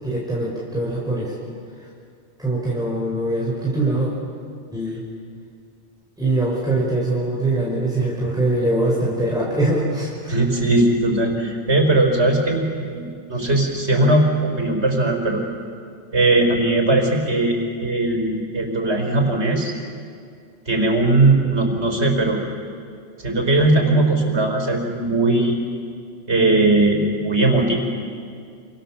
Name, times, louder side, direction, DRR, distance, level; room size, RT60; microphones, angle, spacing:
voice 1, 0.0-1.3 2.4-4.1 4.7-5.0 6.2-10.3 13.3-13.4, right 2 dB, 5° right, -5 dB, 5.2 m, -22 dB
voice 2, 10.3-15.4 16.1-19.7 20.7-22.4 23.2-25.6 26.3-27.8, right 2 dB, 70° right, 2 dB, 5.0 m, -19 dB
28.5 x 27.5 x 7.4 m, 2.3 s
omnidirectional pair, 1.2 m